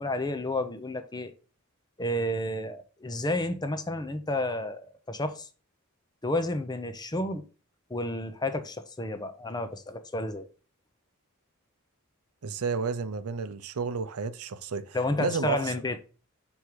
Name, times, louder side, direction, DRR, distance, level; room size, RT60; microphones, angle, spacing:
voice 1, 0.0-1.3 2.0-5.5 6.2-7.4 7.9-10.5 14.9-16.0, left 1 dB, 20° left, 0.7 m, -31 dB
voice 2, 12.4-15.7, right 5 dB, 85° right, 0.6 m, -32 dB
6.3 x 3.5 x 4.6 m
head